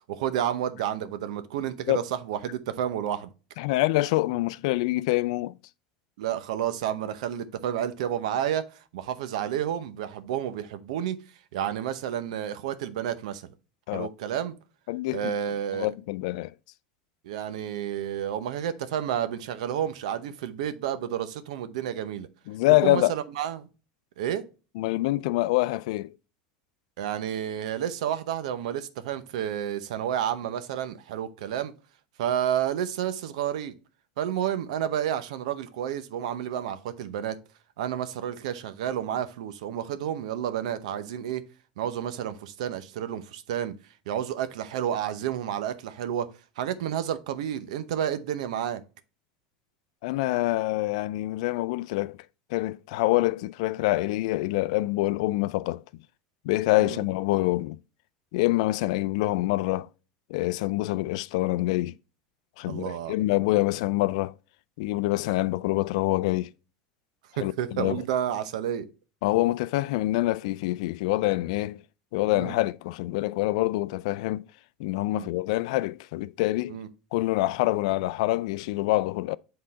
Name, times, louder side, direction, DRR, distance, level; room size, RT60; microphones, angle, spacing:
voice 1, 0.1-3.3 6.2-11.2 11.5-13.5 13.9-14.5 15.1-15.9 17.2-22.3 22.8-23.7 24.2-24.4 27.0-31.7 32.2-33.7 34.2-37.4 37.8-41.4 41.8-43.7 44.1-46.3 46.6-48.8 56.8-57.0 62.7-63.1 67.4-68.9 72.3-72.6 75.1-75.3 76.7-76.9, right 10 dB, 80° right, 0.8 m, -30 dB
voice 2, 3.6-5.6 13.9-14.1 14.9-15.3 15.7-16.5 22.5-23.1 24.8-26.1 50.0-52.2 52.5-55.8 56.4-57.8 58.3-59.9 60.3-62.0 62.6-64.3 64.8-66.5 67.4-68.0 69.2-71.8 72.1-74.4 74.8-76.8 77.1-79.4, left 18 dB, 75° left, 0.3 m, -26 dB
7.6 x 3.9 x 4.0 m
supercardioid pair, 120°, 4 cm